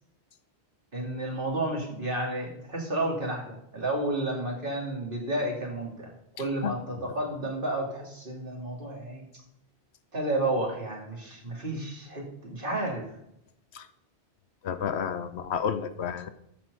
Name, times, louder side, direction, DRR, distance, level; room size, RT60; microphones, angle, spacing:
voice 1, 0.9-6.1 6.4-9.2 10.1-13.1, right 1 dB, 55° right, -1 dB, 2.8 m, -31 dB
voice 2, 14.6-16.3, left 7 dB, 85° left, 11 dB, 1.1 m, -30 dB
13.0 x 6.1 x 5.5 m, 0.78 s
omnidirectional pair, 1.1 m